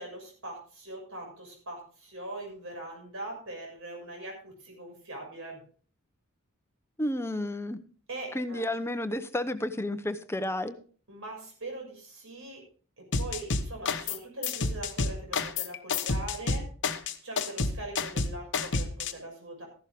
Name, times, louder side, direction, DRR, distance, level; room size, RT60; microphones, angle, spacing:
voice 1, 0.0-5.6 8.1-8.6 11.1-12.6 13.2-16.7 17.2-19.6, right 2 dB, 65° right, 1 dB, 6.4 m, -41 dB
voice 2, 7.0-7.8 8.3-10.8, left 1 dB, 10° left, 10 dB, 0.8 m, -31 dB
sound 1, 13.1-14.2 14.4-19.1, left 4 dB, 60° left, 1.0 m, -29 dB
14.5 x 11.5 x 3.6 m, 0.41 s
head